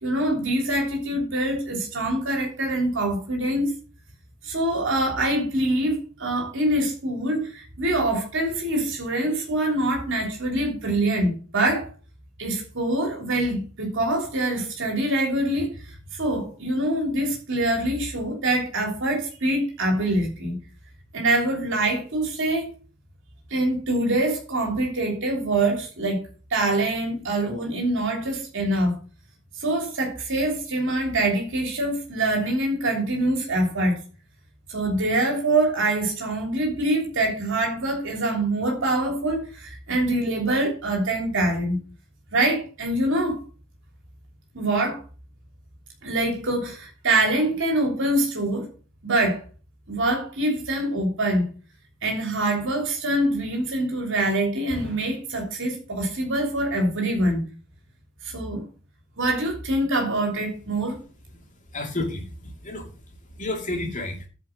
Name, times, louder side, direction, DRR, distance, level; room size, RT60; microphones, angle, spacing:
voice 1, 0.0-3.7 4.4-11.9 12.4-20.6 21.1-22.7 23.5-29.0 29.6-34.0 34.7-41.8 42.3-43.4 44.5-45.0 46.0-48.7 49.0-49.4 49.9-51.5 52.0-57.5 58.2-58.6 59.2-61.0, right 1 dB, 60° right, 3.2 m, -24 dB
voice 2, 61.7-63.0 63.3-64.3, left 2 dB, 40° left, 2.4 m, -31 dB
10.0 x 5.1 x 6.5 m
head